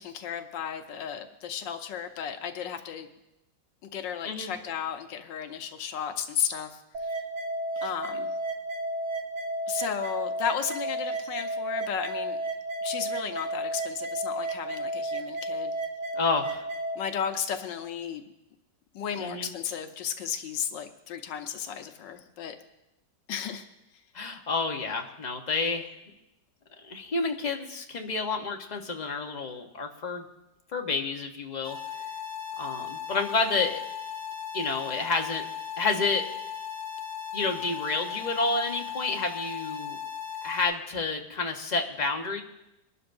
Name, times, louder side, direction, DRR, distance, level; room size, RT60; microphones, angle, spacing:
voice 1, 0.0-3.1 3.8-7.2 7.8-8.3 9.7-12.4 12.8-15.8 17.0-18.2 18.9-22.5 23.3-23.6, left 8 dB, 90° left, 6 dB, 1.5 m, -34 dB
sound 1, 6.9-17.0, right 1 dB, 65° right, 2.0 m, -32 dB
voice 2, 16.1-16.7 19.2-19.5 24.1-25.9 26.8-30.2 30.7-31.8 32.6-33.8 34.5-35.5 35.8-36.3 37.3-40.0 40.4-42.4, left 4 dB, 30° left, 3 dB, 1.0 m, -29 dB
sound 2, 31.6-40.6, left 8 dB, 10° right, 4.4 m, -37 dB
23.5 x 12.0 x 2.6 m, 0.89 s
omnidirectional pair, 1.9 m